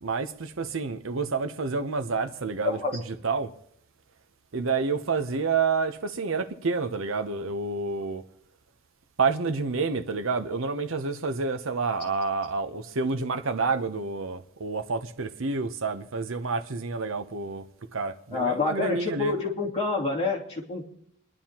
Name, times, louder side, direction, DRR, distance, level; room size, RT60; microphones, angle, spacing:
voice 1, 0.0-3.5 4.5-8.2 9.2-17.7 17.9-19.4, right 4 dB, 65° right, 0.8 m, -29 dB
voice 2, 2.6-3.0 18.3-20.8, left 4 dB, 30° left, 2.8 m, -28 dB
28.0 x 11.0 x 2.9 m
head